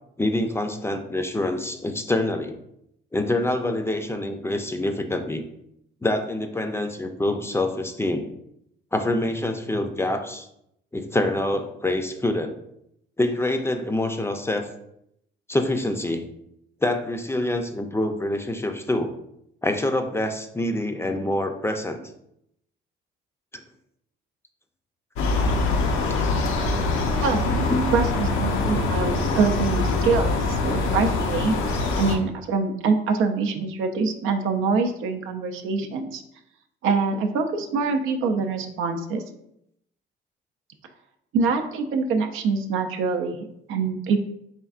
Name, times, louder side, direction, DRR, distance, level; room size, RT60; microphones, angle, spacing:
voice 1, 0.2-2.6 3.1-5.4 6.0-8.3 8.9-10.5 10.9-12.6 13.2-14.7 15.5-16.3 16.8-19.1 19.6-22.0 27.5-28.1, left 1 dB, 10° left, 6 dB, 0.4 m, -26 dB
sound 1, 25.2-32.2, left 3 dB, 90° left, 0.6 m, -24 dB
voice 2, 27.2-27.5 27.9-31.6 32.0-36.2 36.8-39.2 41.3-44.3, right 4 dB, 90° right, 6 dB, 0.5 m, -25 dB
4.3 x 3.4 x 2.4 m, 0.77 s
cardioid pair, 90°, 20 cm